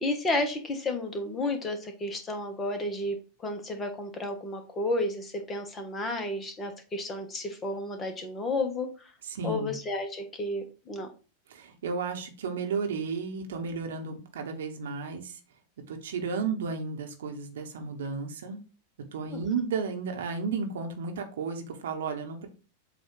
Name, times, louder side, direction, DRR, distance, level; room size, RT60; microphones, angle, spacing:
voice 1, 0.0-9.1 9.4-11.1 19.3-19.4, left 2 dB, 20° left, 6 dB, 1.2 m, -32 dB
voice 2, 9.2-9.7 11.5-15.4 15.9-18.6 19.1-22.5, right 5 dB, 60° right, 4 dB, 1.1 m, -33 dB
7.7 x 2.6 x 4.6 m, 0.34 s
figure-of-eight pair, 90°, 0 cm